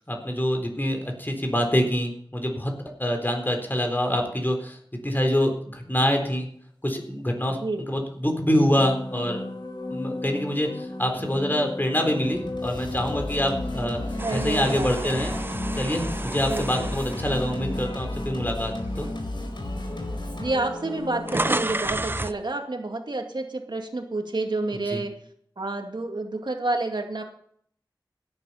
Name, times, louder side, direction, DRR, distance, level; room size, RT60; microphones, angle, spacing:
voice 1, 0.1-2.7 3.0-4.8 5.0-6.5 6.8-7.6 7.9-9.4 9.9-14.0 14.3-15.3 15.7-19.1 24.9-25.0, equal, 25° left, 3 dB, 4.0 m, -25 dB
voice 2, 7.5-7.8 14.2-15.2 16.4-16.8 20.4-25.2 25.6-27.2, right 2 dB, 70° right, 4 dB, 2.2 m, -29 dB
sound 1, 8.4-22.0, left 1 dB, 60° left, 2.4 m, -35 dB
Singing, 12.2-20.5, left 1 dB, 80° left, 4.0 m, -34 dB
sound 2, 14.2-18.4 18.9-19.1 20.0-20.1 20.3-22.4, right 2 dB, 25° right, 0.6 m, -32 dB
16.5 x 10.5 x 5.7 m, 0.63 s
wide cardioid pair, 40°, 8 cm